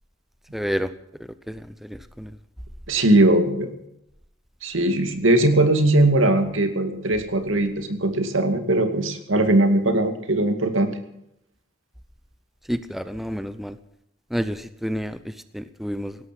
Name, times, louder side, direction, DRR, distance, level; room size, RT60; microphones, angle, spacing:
voice 1, 0.5-0.9 1.5-2.3 12.7-13.8 14.3-16.2, equal, ahead, 12 dB, 0.7 m, -29 dB
voice 2, 2.9-3.7 4.6-10.9, right 1 dB, 75° right, 7 dB, 2.4 m, -20 dB
17.5 x 13.5 x 6.0 m, 0.78 s
head